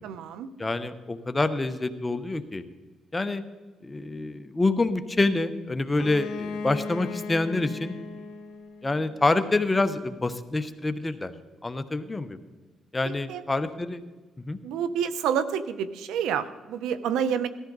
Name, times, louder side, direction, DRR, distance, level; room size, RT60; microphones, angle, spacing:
voice 1, 0.0-0.5 13.0-13.4 14.6-17.5, right 8 dB, 90° right, 13 dB, 0.8 m, -28 dB
voice 2, 0.6-2.6 3.1-3.4 3.8-8.0 8.8-11.3 11.6-12.4 12.9-14.0 14.5-14.6, left 2 dB, 20° left, 9 dB, 0.9 m, -27 dB
Bowed string instrument, 5.9-9.6, left 4 dB, 80° left, 1.1 m, -37 dB
17.5 x 13.5 x 4.0 m, 1.2 s
cardioid pair, 90°, 0 cm